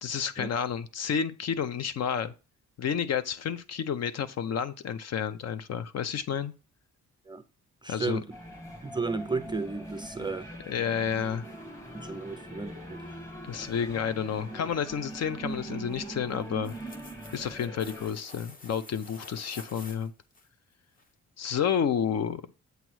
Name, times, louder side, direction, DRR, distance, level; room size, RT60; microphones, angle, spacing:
voice 1, 0.0-2.3 2.8-6.5 7.9-8.2 10.7-11.4 13.4-16.7 17.3-20.1 21.4-22.5, left 7 dB, 60° left, 0.6 m, -30 dB
voice 2, 7.8-8.3 8.8-10.5 11.9-13.0, right 4 dB, 15° right, 0.4 m, -33 dB
sound 1, 8.3-18.1, right 1 dB, 10° left, 1.3 m, -41 dB
sound 2, 16.4-20.5 21.0-21.1, left 2 dB, 30° left, 0.8 m, -49 dB
8.1 x 3.0 x 6.2 m
wide cardioid pair, 175°, 30 cm